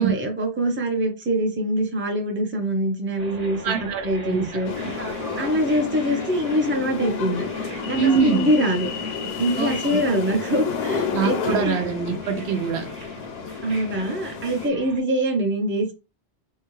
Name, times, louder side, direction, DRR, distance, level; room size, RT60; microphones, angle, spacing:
voice 1, 0.0-4.7 5.3-7.5 7.9-8.9 9.4-11.8 13.6-15.9, equal, 15° right, 0.6 m, -24 dB
sound 1, 3.2-15.0, right 2 dB, 40° right, 0.9 m, -40 dB
voice 2, 3.6-4.5 8.0-8.5 9.6-10.0 11.1-12.9, right 6 dB, 75° right, 0.9 m, -24 dB
sound 2, 4.6-14.7, left 6 dB, 70° left, 0.8 m, -31 dB
3.7 x 2.2 x 3.0 m
omnidirectional pair, 1.1 m